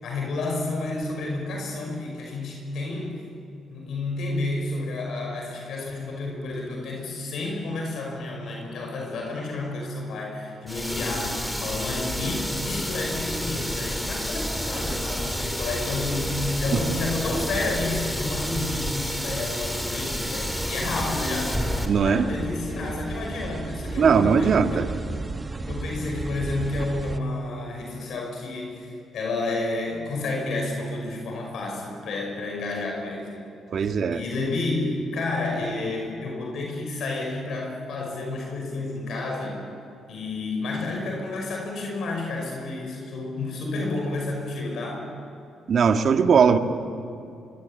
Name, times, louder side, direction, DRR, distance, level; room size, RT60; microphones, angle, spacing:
voice 1, 0.0-3.2 3.7-12.4 12.6-24.9 25.7-33.5 34.1-39.6 40.1-45.1, left 2 dB, 70° left, 1 dB, 5.7 m, -30 dB
sound 1, 10.7-21.9, equal, 5° left, 3.0 m, -30 dB
sound 2, 14.4-27.2, right 3 dB, 25° right, 1.3 m, -36 dB
voice 2, 21.9-22.3 24.0-24.8 33.7-34.2 45.7-46.6, right 6 dB, 55° right, 6 dB, 1.7 m, -19 dB
25.0 x 24.5 x 9.0 m, 2.5 s
cardioid pair, 90°, 0 cm